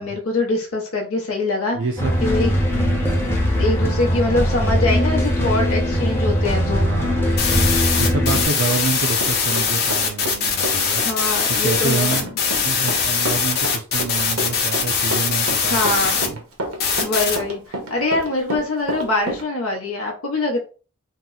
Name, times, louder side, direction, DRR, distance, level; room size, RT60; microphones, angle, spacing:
voice 1, 0.0-1.8 2.2-2.5 3.6-6.9 11.0-12.3 15.6-16.3 17.0-20.6, left 2 dB, 85° left, 0.7 m, -23 dB
voice 2, 1.7-2.2 2.4-3.3 5.3-5.8 6.8-7.3 8.0-11.0 11.5-15.8 16.3-16.4, right 4 dB, 60° right, 0.4 m, -27 dB
sound 1, 2.0-8.5, equal, 10° left, 0.6 m, -20 dB
sound 2, 7.4-16.3 16.8-17.4, left 5 dB, 45° left, 0.7 m, -21 dB
Run, 8.7-10.4 10.6-19.4, right 1 dB, 85° right, 0.9 m, -29 dB
2.8 x 2.0 x 3.7 m
head